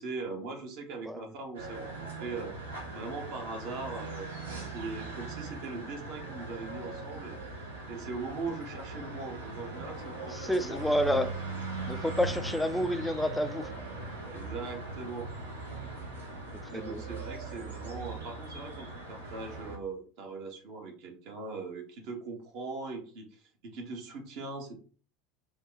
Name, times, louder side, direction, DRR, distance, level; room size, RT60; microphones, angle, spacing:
voice 1, 0.0-2.5 2.9-10.8 11.1-11.2 14.3-15.3 16.7-24.8, right 4 dB, 55° right, 1.0 m, -40 dB
sound 1, 1.5-19.8, right 2 dB, 80° right, 0.9 m, -40 dB
voice 2, 10.3-11.3 11.9-13.7 16.7-17.0, equal, 5° left, 0.4 m, -29 dB
2.9 x 2.2 x 3.7 m
figure-of-eight pair, 75°, 0 cm